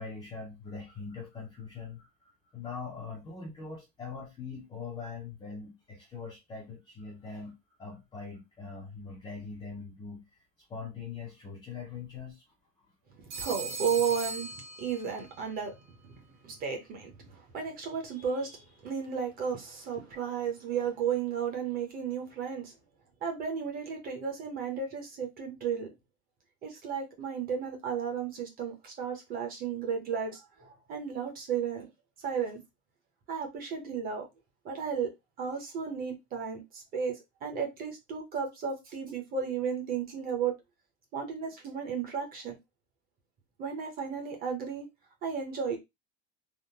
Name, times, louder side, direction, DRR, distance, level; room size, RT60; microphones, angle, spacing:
voice 1, 0.0-2.1 2.5-10.2 10.7-12.4, left 5 dB, 10° left, 0.4 m, -42 dB
Telephone, 13.3-15.4, right 4 dB, 55° right, 1.4 m, -39 dB
voice 2, 13.4-14.5 14.8-15.7 16.0-16.1 16.4-22.7 23.2-25.9 26.6-31.9 32.2-32.6 33.3-34.3 34.6-35.1 35.4-40.5 41.1-42.5 43.6-44.9 45.2-45.8, right 6 dB, 25° right, 0.7 m, -34 dB
3.5 x 2.1 x 2.7 m
cardioid pair, 175°, 37 cm